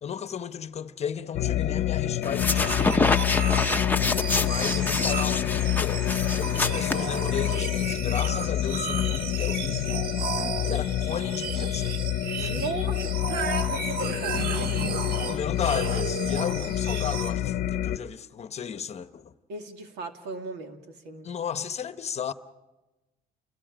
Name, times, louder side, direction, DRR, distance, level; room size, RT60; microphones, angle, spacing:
voice 1, 0.0-3.1 4.4-6.0 6.4-10.0 10.7-12.0 12.4-12.7 15.3-19.3 21.2-22.3, left 7 dB, 40° left, 0.9 m, -34 dB
sound 1, 1.3-18.0, left 12 dB, 65° left, 0.8 m, -28 dB
sound 2, 2.2-7.6, left 3 dB, 10° left, 0.9 m, -27 dB
sound 3, 2.4-17.3, right 5 dB, 65° right, 1.8 m, -34 dB
voice 2, 12.4-15.0 19.5-21.3, right 4 dB, 85° right, 2.5 m, -36 dB
29.5 x 21.5 x 5.1 m
cardioid pair, 110°, 17 cm